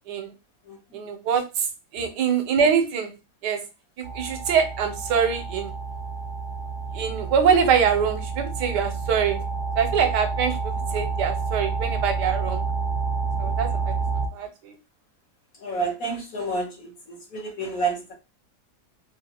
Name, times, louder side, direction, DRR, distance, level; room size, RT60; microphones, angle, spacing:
voice 1, 0.9-1.7 1.9-3.1 3.4-3.6 4.1-5.7 6.9-9.4 9.8-12.6 13.4-13.9 14.3-14.7, right 7 dB, 80° right, 7 dB, 1.2 m, -24 dB
sound 1, 4.0-14.3, right 4 dB, 60° right, 0.8 m, -29 dB
voice 2, 15.6-16.7 17.1-18.1, right 3 dB, 55° left, -1 dB, 1.4 m, -29 dB
3.3 x 2.3 x 2.8 m, 0.28 s
omnidirectional pair, 1.8 m